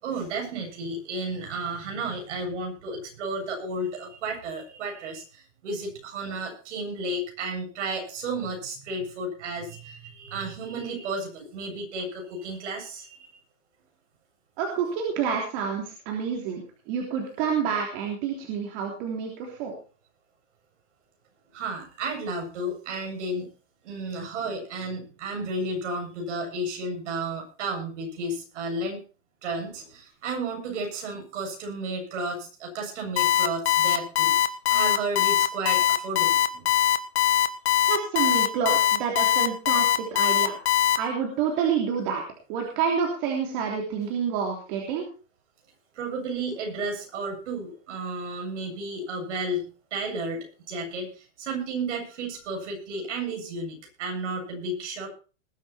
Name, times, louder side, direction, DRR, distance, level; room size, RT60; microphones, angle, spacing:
voice 1, 0.0-13.3 21.5-23.5 23.8-29.0 29.4-36.7 45.9-55.1, right 2 dB, 70° right, 1 dB, 7.6 m, -33 dB
voice 2, 14.6-19.7 37.9-40.5 41.0-42.2 42.5-45.0, right 7 dB, 45° right, 0 dB, 3.4 m, -28 dB
Alarm, 33.2-41.0, left 12 dB, 60° left, 1.5 m, -21 dB
20.5 x 8.5 x 4.4 m, 0.37 s
supercardioid pair, 155°, 37 cm